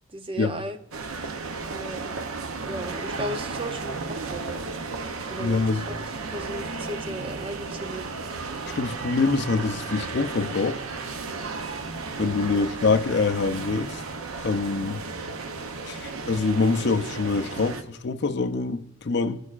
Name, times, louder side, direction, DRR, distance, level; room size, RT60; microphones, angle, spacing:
voice 1, 0.1-0.8 1.7-2.1 2.6-4.7 5.3-6.1 6.3-8.1 12.4-12.7, right 1 dB, 25° right, 0.5 m, -36 dB
sound 1, 0.9-17.8, right 4 dB, 80° right, 0.6 m, -34 dB
voice 2, 5.4-5.8 8.7-10.8 12.2-14.0 14.4-15.0 15.8-19.4, left 4 dB, 50° left, 0.5 m, -25 dB
15.0 x 6.4 x 2.4 m
head